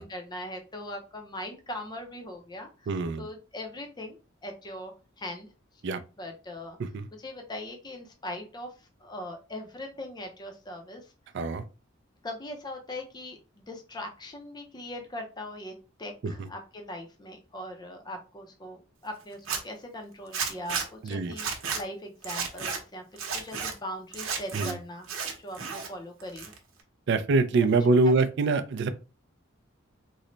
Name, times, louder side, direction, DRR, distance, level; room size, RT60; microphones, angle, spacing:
voice 1, 0.0-5.5 6.2-6.8 7.2-8.7 9.0-11.0 12.2-15.7 16.0-21.5 21.7-23.0 23.3-25.1 25.4-26.5, left 1 dB, 20° left, 0.5 m, -40 dB
voice 2, 2.9-3.3 5.8-6.0 6.8-7.1 11.3-11.6 16.2-16.5 21.0-21.3 24.5-24.7 27.1-28.9, right 3 dB, 60° right, 0.4 m, -24 dB
Zipper (clothing), 19.3-19.6 20.3-20.9 21.3-21.8 22.2-22.8 23.2-23.7 24.1-24.7 25.0-25.9 26.2-26.8, right 5 dB, 85° right, 0.8 m, -32 dB
3.1 x 2.1 x 3.8 m
head